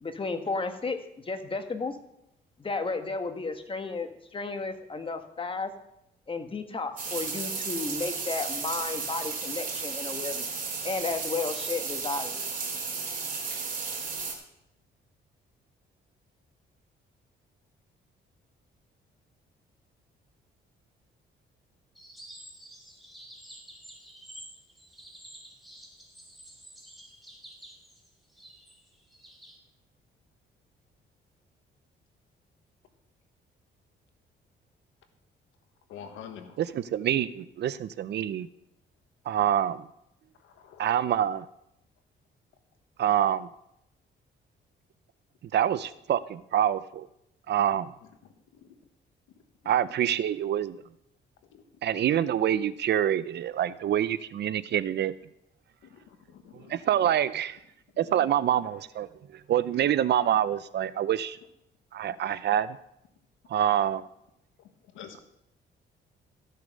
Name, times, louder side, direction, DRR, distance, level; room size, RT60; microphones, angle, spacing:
voice 1, 0.0-2.0 2.6-5.7 6.3-10.5 10.8-12.4, left 3 dB, 25° left, 7 dB, 1.4 m, -33 dB
sound 1, 7.0-14.3, right 4 dB, 45° right, 2.7 m, -34 dB
sound 2, 21.9-29.6, right 1 dB, ahead, 2.4 m, -50 dB
voice 2, 35.9-36.6 40.6-40.9 51.5-51.6 55.9-56.0 56.3-56.8 62.2-62.4 64.9-65.2, left 8 dB, 90° left, 7 dB, 1.3 m, -45 dB
voice 3, 36.6-38.5 39.3-39.8 40.8-41.5 43.0-43.5 45.5-47.1 47.5-47.9 49.7-50.8 51.8-55.1 56.7-57.6 58.0-59.1 59.5-61.4 61.9-62.8 63.5-64.0, right 10 dB, 60° right, 17 dB, 0.5 m, -26 dB
14.0 x 6.7 x 5.2 m, 0.82 s
cardioid pair, 90°, 20 cm